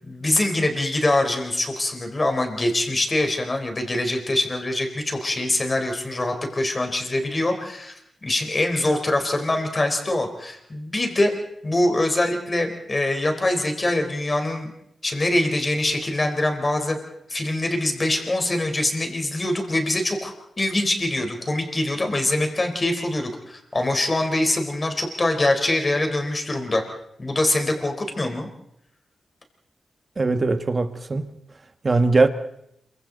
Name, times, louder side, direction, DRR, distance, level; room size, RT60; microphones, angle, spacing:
voice 1, 0.0-7.9 8.2-11.3 11.6-14.7 15.0-17.0 17.3-26.8 27.2-28.5, left 1 dB, 30° left, 4 dB, 4.2 m, -24 dB
voice 2, 30.2-31.3 31.8-32.3, right 3 dB, 40° right, 9 dB, 1.6 m, -20 dB
27.5 x 24.5 x 4.1 m, 0.74 s
cardioid pair, 75°, 0 cm